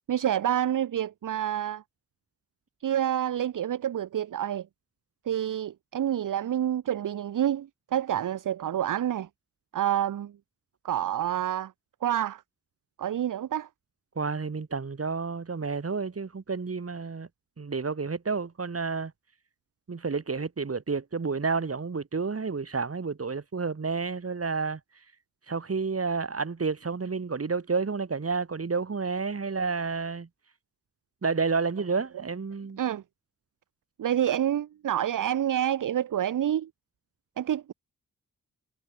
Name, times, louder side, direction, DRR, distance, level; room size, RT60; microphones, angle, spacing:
voice 1, 0.1-1.8 2.8-4.7 5.3-9.3 9.7-10.3 10.8-11.7 12.0-12.4 13.0-13.7 32.8-33.0 34.0-36.7 37.4-37.7, right 10 dB, 60° right, 0.8 m, -28 dB
voice 2, 14.2-17.3 17.6-19.1 19.9-24.8 25.5-30.3 31.2-32.8, right 4 dB, 40° right, 2.4 m, -30 dB
supercardioid pair, 45°, 36 cm